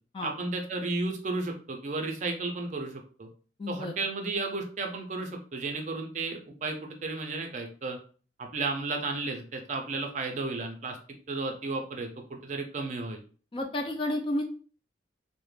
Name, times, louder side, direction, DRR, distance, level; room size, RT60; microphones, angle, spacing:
voice 1, 0.2-3.3 3.7-8.0 8.4-11.0 11.3-13.2, right 3 dB, 40° right, 3 dB, 0.4 m, -33 dB
voice 2, 3.6-3.9 13.5-14.4, left 1 dB, 25° left, 4 dB, 0.3 m, -31 dB
2.3 x 2.0 x 3.1 m, 0.39 s
head